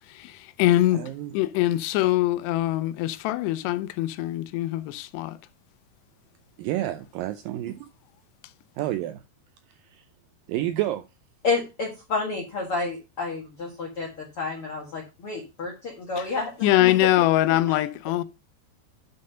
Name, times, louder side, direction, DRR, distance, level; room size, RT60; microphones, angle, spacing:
voice 1, 0.1-5.4 16.2-16.3 16.6-18.2, left 15 dB, 90° left, 2.8 m, -23 dB
voice 2, 0.9-1.3 6.6-7.9 8.8-9.2 9.7-10.1 10.5-11.1, right 14 dB, 85° right, 2.0 m, -30 dB
voice 3, 11.4-16.9 17.5-17.8, left 4 dB, 50° left, 1.8 m, -30 dB
9.5 x 5.4 x 5.5 m
omnidirectional pair, 4.7 m